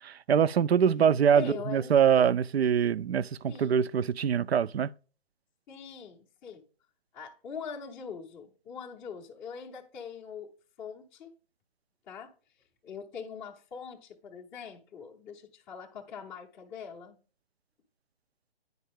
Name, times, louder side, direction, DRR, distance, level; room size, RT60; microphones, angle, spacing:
voice 1, 0.0-4.9, right 8 dB, 85° right, 0.5 m, -24 dB
voice 2, 1.4-1.9 3.5-3.8 5.7-6.6 7.1-10.5 10.8-11.3 12.1-12.3 12.8-17.2, left 6 dB, 10° left, 0.5 m, -42 dB
9.3 x 5.5 x 3.5 m
hypercardioid pair, 145°, 31 cm